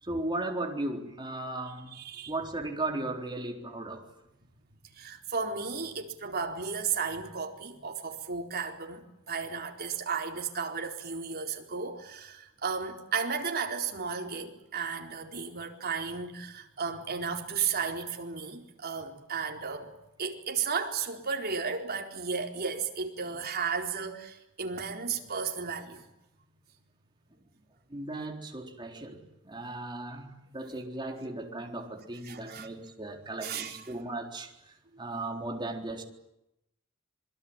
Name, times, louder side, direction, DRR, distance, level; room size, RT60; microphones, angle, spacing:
voice 1, 0.0-2.0 2.3-4.1 23.3-23.4 27.9-36.0, right 2 dB, 20° right, 3.9 m, -36 dB
voice 2, 1.9-2.3 4.9-19.9 20.2-26.0 32.3-32.7 33.4-33.8, right 5 dB, 45° right, 4.3 m, -34 dB
26.5 x 22.5 x 9.0 m
head